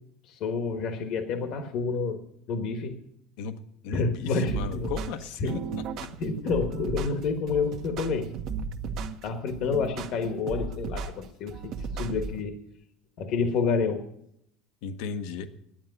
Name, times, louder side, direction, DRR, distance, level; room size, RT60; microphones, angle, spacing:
voice 1, 0.2-2.2 2.5-3.0 3.9-4.9 5.4-5.6 6.2-8.4 9.2-12.6 13.2-14.0, left 4 dB, 55° left, 6 dB, 1.3 m, -29 dB
voice 2, 3.4-6.2 14.8-15.5, left 6 dB, 75° left, 9 dB, 1.0 m, -36 dB
sound 1, 4.5-12.4, right 5 dB, 50° right, 1.0 m, -35 dB
10.5 x 8.8 x 9.6 m, 0.74 s
cardioid pair, 140°, 0 cm